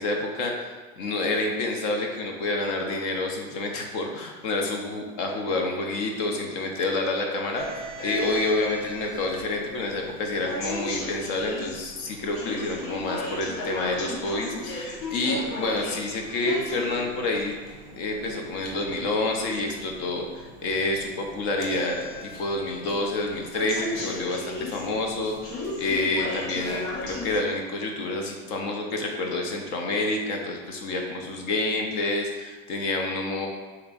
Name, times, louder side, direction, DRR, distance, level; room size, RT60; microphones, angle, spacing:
voice 1, 0.0-17.5 17.9-22.0 22.2-33.5, left 2 dB, 60° left, 2 dB, 0.9 m, -28 dB
sound 1, 7.6-27.4, left 1 dB, 85° left, 0.9 m, -36 dB
6.6 x 3.1 x 2.5 m, 1.4 s
hypercardioid pair, 95°, 39 cm